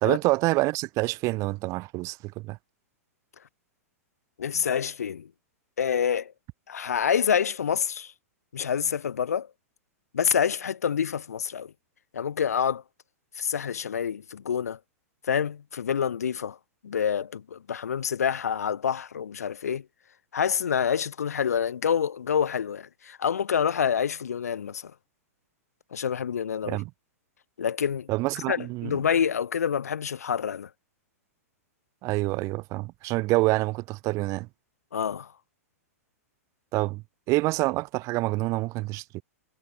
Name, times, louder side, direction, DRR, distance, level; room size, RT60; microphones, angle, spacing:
voice 1, 0.0-2.6 26.7-26.9 28.1-29.0 32.0-34.5 36.7-39.2, right 21 dB, 40° right, 1.8 m, -27 dB
voice 2, 4.4-5.3 5.8-6.3 6.7-8.1 8.5-9.5 10.1-11.7 12.1-12.8 13.3-14.8 15.2-16.6 16.8-19.9 20.3-24.9 25.9-26.8 27.6-28.1 28.3-30.7 34.9-35.3, left 7 dB, 75° left, 1.0 m, -27 dB
hypercardioid pair, 105°, 8 cm